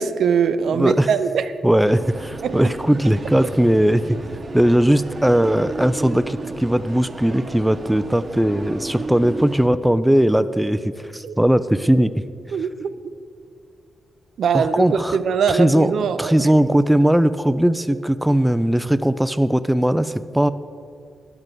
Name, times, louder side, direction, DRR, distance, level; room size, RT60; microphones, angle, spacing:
voice 1, 0.0-1.5 2.4-2.6 11.2-11.4 12.5-12.9 14.4-16.5, right 6 dB, 70° right, 12 dB, 0.5 m, -21 dB
voice 2, 0.7-1.1 1.6-4.2 4.5-10.8 11.1-12.1 14.5-15.2 15.5-20.5, right 1 dB, 5° right, 12 dB, 0.3 m, -18 dB
sound 1, 1.9-9.7, right 3 dB, 35° right, 0.9 m, -34 dB
10.5 x 6.0 x 6.6 m, 2.3 s
cardioid pair, 105°, 0 cm